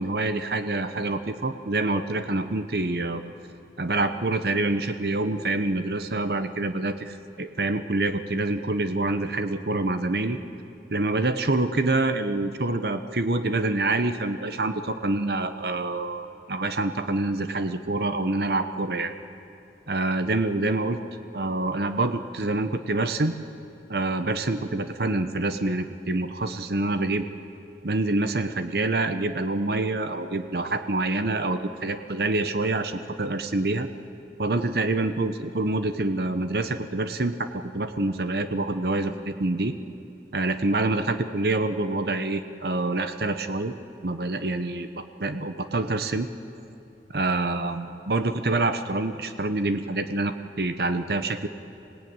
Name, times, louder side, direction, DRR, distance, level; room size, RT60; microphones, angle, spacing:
voice 1, 0.0-3.2 3.8-10.4 10.9-19.1 19.9-21.0 21.3-23.3 23.9-27.3 27.8-33.9 34.4-37.5 37.7-39.7 40.3-43.7 44.0-46.3 47.1-51.5, right 2 dB, 60° right, 9 dB, 0.9 m, -26 dB
27.0 x 17.5 x 8.9 m, 2.7 s
head